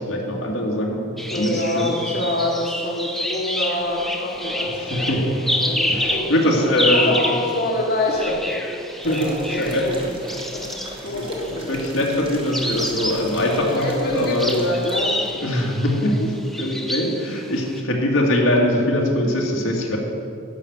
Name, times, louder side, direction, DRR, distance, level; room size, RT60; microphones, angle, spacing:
voice 1, 0.0-1.9 4.9-5.4 5.9-7.2 9.0-9.9 10.3-10.4 11.0-11.3 11.7-14.5 15.4-20.0, left 1 dB, 90° left, -1 dB, 1.9 m, -22 dB
sound 1, 1.2-11.8 12.4-17.8, left 1 dB, ahead, 0.5 m, -28 dB
voice 2, 1.3-5.2 5.6-8.4 9.0-10.1 10.5-10.7 11.0-11.8 13.5-15.5, left 1 dB, 50° left, -1 dB, 1.2 m, -26 dB
sound 2, 3.7-10.3, right 1 dB, 45° right, 0.9 m, -36 dB
sound 3, 9.0-15.3 15.6-15.7, right 2 dB, 25° right, 1.3 m, -39 dB
11.5 x 5.9 x 8.2 m, 2.4 s
head